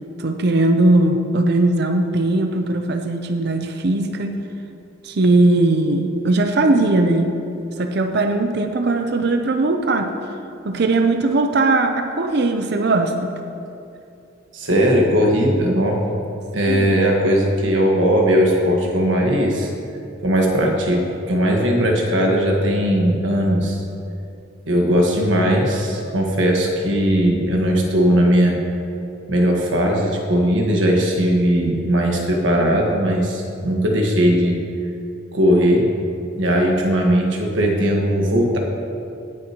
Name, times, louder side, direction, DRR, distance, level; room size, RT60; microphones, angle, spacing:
voice 1, 0.2-4.4 5.0-7.3 7.8-10.1 10.6-13.4 16.7-17.0, right 2 dB, 55° right, 5 dB, 0.6 m, -19 dB
voice 2, 14.5-16.0 16.5-19.7 20.2-23.8 24.6-28.6 29.3-34.6 35.3-35.8 36.3-38.6, equal, 75° right, 0 dB, 1.5 m, -18 dB
18.0 x 6.4 x 3.0 m, 2.6 s
head